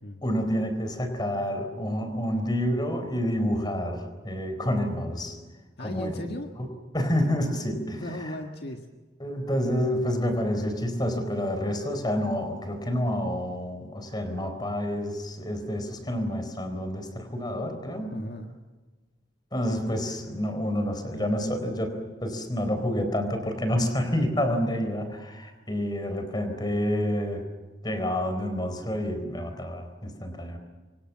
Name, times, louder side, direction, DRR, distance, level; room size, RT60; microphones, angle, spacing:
voice 1, 0.2-5.4 5.8-6.3 6.6-6.7 6.9-8.3 9.2-18.1 19.5-27.5 27.8-30.6, equal, 25° left, 7 dB, 4.3 m, -28 dB
voice 2, 5.8-6.5 7.8-8.8 18.1-18.6, left 1 dB, 60° left, 3 dB, 1.7 m, -37 dB
28.0 x 24.5 x 7.5 m, 1.3 s
head